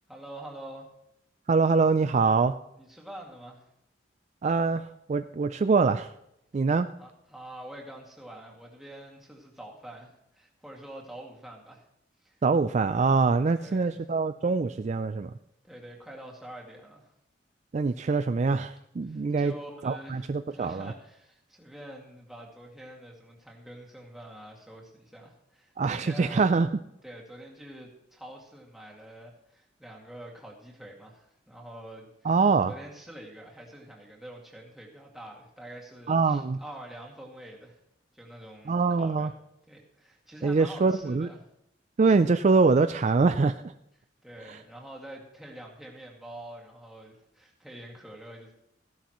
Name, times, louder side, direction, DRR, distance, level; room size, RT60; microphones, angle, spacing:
voice 1, 0.1-0.9 2.8-3.6 6.8-11.8 12.2-12.4 13.5-14.0 15.6-17.1 19.0-26.5 27.0-32.4 32.7-37.8 38.1-39.3 39.7-41.5 44.2-48.5, right 1 dB, ahead, -2 dB, 2.2 m, -46 dB
voice 2, 1.5-2.5 4.4-4.8 5.1-6.1 6.5-6.9 12.4-15.3 17.7-19.5 19.8-20.9 25.8-26.7 32.2-32.7 36.1-36.6 38.7-39.3 40.4-41.3 42.0-43.5, right 4 dB, 40° right, 10 dB, 0.3 m, -24 dB
15.5 x 11.5 x 3.1 m, 0.78 s
head